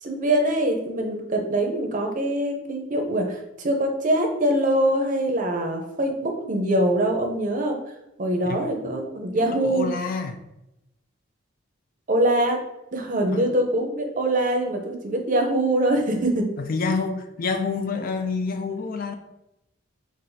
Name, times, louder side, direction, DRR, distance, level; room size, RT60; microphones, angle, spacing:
voice 1, 0.0-7.8 8.2-9.9 12.1-12.6 12.9-16.5, right 1 dB, 40° right, 0.6 m, -23 dB
voice 2, 9.3-10.4 13.3-13.5 16.6-19.1, left 4 dB, 45° left, 0.4 m, -28 dB
5.6 x 2.4 x 2.7 m
head